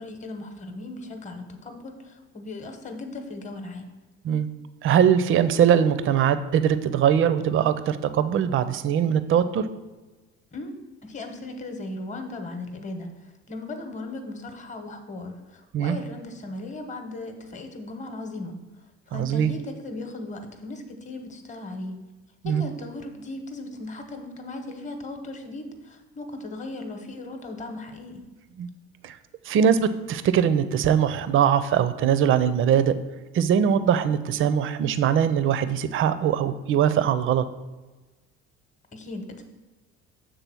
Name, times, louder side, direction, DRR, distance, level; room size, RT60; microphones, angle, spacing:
voice 1, 0.0-3.9 10.5-10.7 11.0-18.6 19.1-21.9 22.4-28.2 38.9-39.4, left 2 dB, 25° left, 5 dB, 0.9 m, -37 dB
voice 2, 4.8-9.7 15.7-16.0 19.1-19.5 22.4-22.6 28.6-28.7 29.0-29.2 29.5-33.0 33.3-37.5, right 8 dB, 45° right, 13 dB, 0.5 m, -21 dB
6.9 x 3.8 x 6.1 m, 1.2 s
cardioid pair, 115°, 30 cm